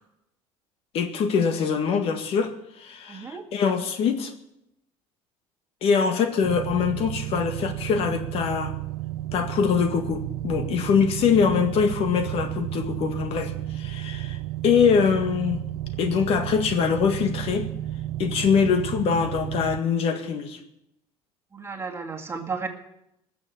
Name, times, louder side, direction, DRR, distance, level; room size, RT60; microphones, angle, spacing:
voice 1, 0.9-4.3 5.8-8.8 9.3-14.4 14.6-15.6 16.0-17.7 18.2-20.6, left 6 dB, 60° left, 7 dB, 1.8 m, -23 dB
voice 2, 3.1-3.4 21.5-22.7, right 5 dB, 25° right, 3 dB, 2.0 m, -33 dB
sound 1, 6.4-19.8, right 14 dB, 85° right, 0.5 m, -32 dB
19.5 x 7.1 x 8.6 m, 0.82 s
cardioid pair, 120°, 11 cm